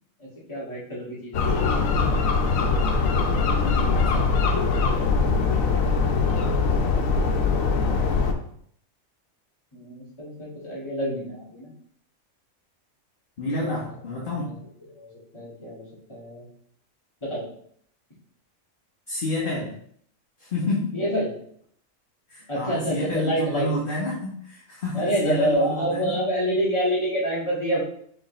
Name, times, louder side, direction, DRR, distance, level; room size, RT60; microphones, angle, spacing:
voice 1, 0.2-1.8 9.7-11.7 13.6-13.8 14.4-14.6 14.9-15.1 15.3-16.5 17.2-17.4 20.9-21.3 22.5-23.7 24.9-27.8, equal, 20° left, -9 dB, 1.8 m, -27 dB
sound 1, 1.3-8.3, left 4 dB, 90° left, 1.0 m, -22 dB
voice 2, 3.6-4.3 13.4-14.5 19.1-19.7 20.4-21.0 22.3-26.1, left 1 dB, 45° left, -4 dB, 0.9 m, -29 dB
4.8 x 3.5 x 3.1 m, 0.65 s
omnidirectional pair, 1.4 m